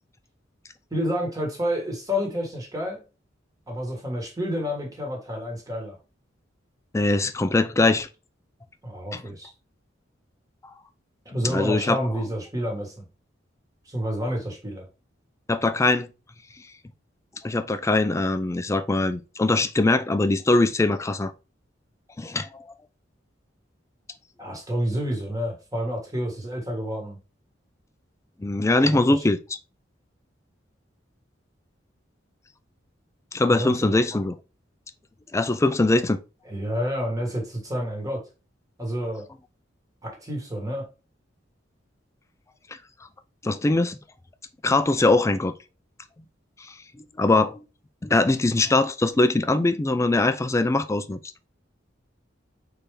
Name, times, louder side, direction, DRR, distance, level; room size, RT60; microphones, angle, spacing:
voice 1, 0.9-3.0 3.7-6.0 8.8-9.5 11.2-13.0 13.9-14.9 24.4-27.2 28.8-29.2 33.5-34.0 36.5-38.2 38.8-39.3 40.0-40.8, equal, 20° right, 1.4 m, -29 dB
voice 2, 6.9-8.1 9.1-9.2 11.4-12.0 15.5-16.1 17.4-21.3 22.2-22.6 28.4-29.4 33.3-34.4 35.3-36.2 43.4-44.0 44.6-45.5 47.2-47.6 48.0-51.2, left 2 dB, 15° left, 0.3 m, -22 dB
4.2 x 3.3 x 3.3 m
head